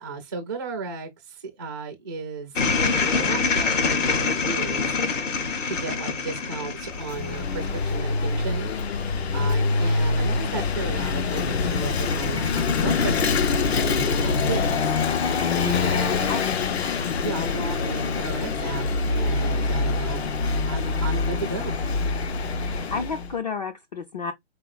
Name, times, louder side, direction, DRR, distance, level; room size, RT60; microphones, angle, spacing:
voice 1, 0.0-5.0 5.7-8.7 9.3-14.8 15.6-16.5 17.2-20.2 20.7-21.7, right 4 dB, 20° right, 0.4 m, -34 dB
sound 1, 2.6-8.0, left 4 dB, 85° left, 1.6 m, -25 dB
Vehicle / Engine, 6.7-23.3, left 4 dB, 60° left, 0.9 m, -25 dB
voice 2, 22.7-24.3, left 5 dB, 35° left, 0.5 m, -31 dB
4.7 x 3.8 x 2.3 m
hypercardioid pair, 165°, 36 cm